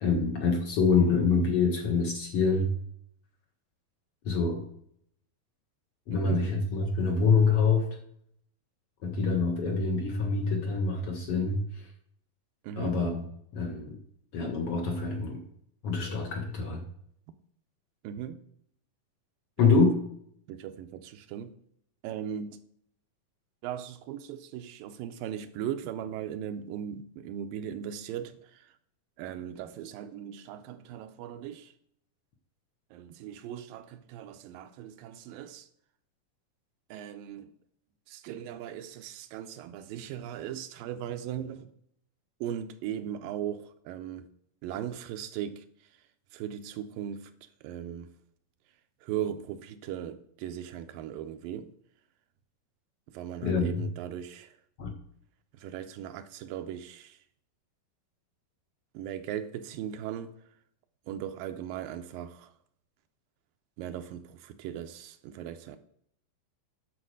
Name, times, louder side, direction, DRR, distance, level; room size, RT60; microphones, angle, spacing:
voice 1, 0.0-2.7 4.2-4.6 6.1-8.0 9.0-11.9 12.8-13.2 13.5-14.0 14.3-15.4 15.8-16.8 19.6-20.0 53.4-53.8 54.8-54.9, left 4 dB, 65° left, 1.5 m, -26 dB
voice 2, 12.6-13.0 18.0-18.4 19.6-19.8 20.5-21.6 22.0-22.6 23.6-28.8 29.2-31.7 32.9-35.7 36.9-37.5 38.1-41.7 42.4-44.3 44.6-46.0 46.3-48.1 49.0-51.7 53.1-54.6 55.5-57.2 58.9-60.3 61.1-62.5 63.8-65.8, right 10 dB, 85° right, 2.3 m, -38 dB
10.0 x 6.4 x 4.8 m
omnidirectional pair, 4.1 m